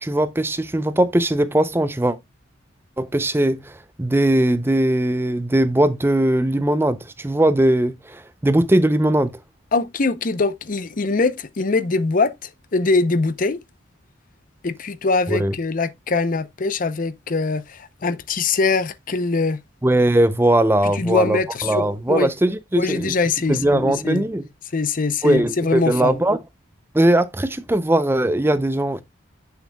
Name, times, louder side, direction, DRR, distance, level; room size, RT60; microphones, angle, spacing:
voice 1, 0.0-2.2 3.0-9.3 15.3-15.5 19.8-23.1 23.5-24.4 25.2-26.4 26.9-29.0, right 1 dB, 10° right, 0.5 m, -19 dB
voice 2, 9.7-13.6 14.6-19.6 20.8-22.3 22.8-24.3 24.7-26.2, left 3 dB, 45° left, 0.6 m, -22 dB
8.8 x 6.8 x 2.2 m
head